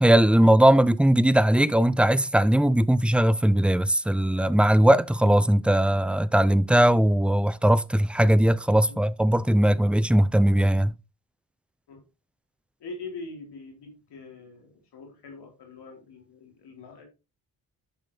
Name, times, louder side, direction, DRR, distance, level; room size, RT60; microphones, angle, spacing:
voice 1, 0.0-10.9, right 1 dB, 5° right, 0.4 m, -20 dB
voice 2, 12.8-17.0, left 3 dB, 85° left, 4.1 m, -43 dB
10.5 x 6.0 x 3.3 m
cardioid pair, 75°, 39 cm